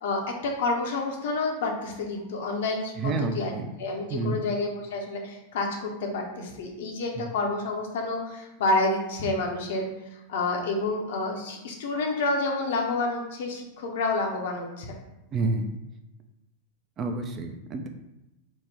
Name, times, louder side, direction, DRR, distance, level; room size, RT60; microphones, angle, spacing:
voice 1, 0.0-3.5 3.8-15.0, left 2 dB, 55° left, 1 dB, 0.6 m, -29 dB
voice 2, 3.0-3.7 4.1-4.4 15.3-15.7 17.0-17.9, right 3 dB, 30° right, 6 dB, 0.4 m, -29 dB
4.1 x 2.1 x 3.3 m, 0.93 s
figure-of-eight pair, 90°, 0 cm